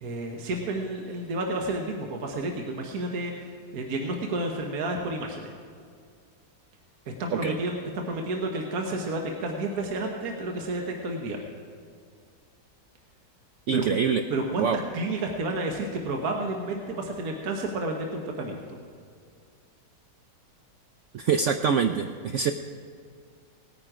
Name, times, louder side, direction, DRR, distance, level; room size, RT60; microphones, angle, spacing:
voice 1, 0.0-5.5 7.2-11.4 13.7-13.9 14.3-18.6, right 2 dB, 60° right, 2 dB, 1.5 m, -31 dB
voice 2, 13.7-14.2 14.6-14.8 21.1-22.5, right 6 dB, 80° right, 7 dB, 0.6 m, -24 dB
18.5 x 9.1 x 4.9 m, 2.1 s
omnidirectional pair, 1.9 m